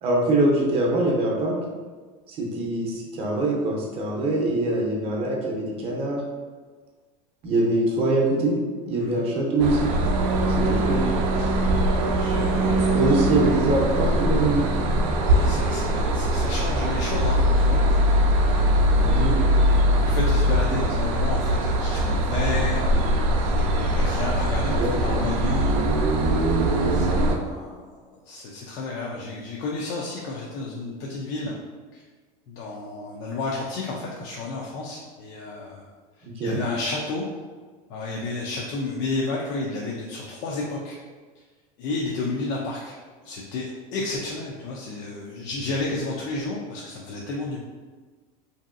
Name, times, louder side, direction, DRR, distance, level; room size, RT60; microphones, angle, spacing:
voice 1, 0.0-1.5 2.3-6.2 7.4-8.6 8.8-9.9 10.5-11.1 12.9-14.7 19.0-19.5 24.7-25.3 36.2-36.6, right 2 dB, 35° right, -2 dB, 0.6 m, -24 dB
sound 1, 9.6-27.4, right 1 dB, 75° right, 0.5 m, -21 dB
voice 2, 12.1-13.2 15.3-17.8 18.5-19.4 20.0-26.1 26.9-31.6 31.9-32.0 32.5-35.9 36.2-37.2 37.9-41.0 41.8-47.6, left 3 dB, 55° left, -2 dB, 0.4 m, -32 dB
2.9 x 2.7 x 2.5 m, 1.4 s
supercardioid pair, 155°, 18 cm